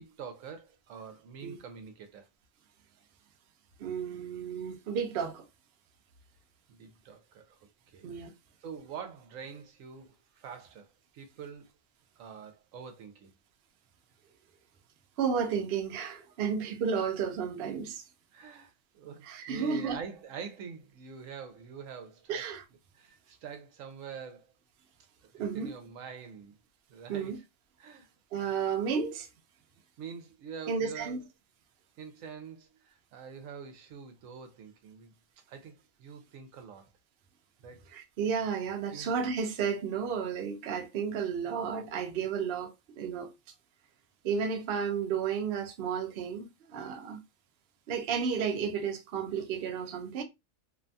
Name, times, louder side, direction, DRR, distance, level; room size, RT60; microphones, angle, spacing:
voice 1, 0.0-2.3 6.7-7.6 7.9-8.1 8.6-10.9 11.1-11.6 12.2-13.3 16.3-16.5 18.3-22.4 22.9-24.5 25.3-26.6 26.9-27.4 27.8-28.1 30.0-31.2 32.0-35.1 35.5-36.9 37.6-37.8 38.9-39.1 41.4-41.8, right 6 dB, 80° right, 1.0 m, -45 dB
voice 2, 3.8-5.4 8.0-8.3 15.2-18.0 19.2-20.0 22.3-22.6 25.4-25.7 27.1-27.4 28.3-29.3 30.7-31.2 37.9-43.3 44.2-47.2 47.9-50.2, right 6 dB, 60° right, 0.7 m, -32 dB
2.7 x 2.2 x 2.5 m
omnidirectional pair, 1.4 m